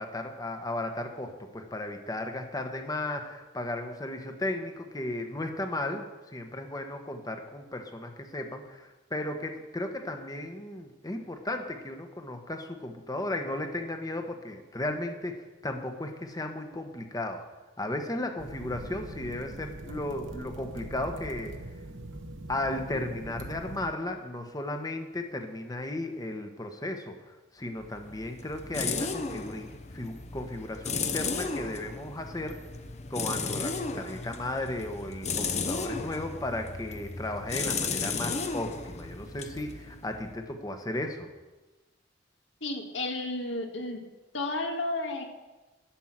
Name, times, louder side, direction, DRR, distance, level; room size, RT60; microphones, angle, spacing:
voice 1, 0.0-6.1 6.3-17.5 17.8-21.5 22.5-32.6 33.1-41.3, left 1 dB, 20° left, 5 dB, 1.1 m, -35 dB
sound 1, 18.4-23.9, right 1 dB, 75° right, 1.1 m, -42 dB
sound 2, 27.8-40.5, left 4 dB, 35° left, 0.8 m, -34 dB
voice 2, 42.6-44.0 44.3-45.2, left 2 dB, 75° left, 2 dB, 1.9 m, -32 dB
11.5 x 6.4 x 7.4 m, 1.2 s
head